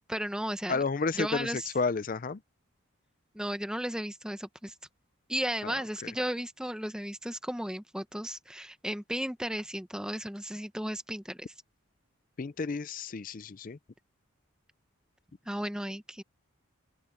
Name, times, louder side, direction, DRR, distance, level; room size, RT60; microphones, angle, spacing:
voice 1, 0.1-0.8 1.1-1.7 3.3-4.7 5.3-11.5 15.5-16.2, equal, 5° right, 0.8 m, -35 dB
voice 2, 0.7-2.4 5.6-5.7 6.0-6.1 12.4-13.8, left 4 dB, 40° left, 0.4 m, -31 dB
open air
head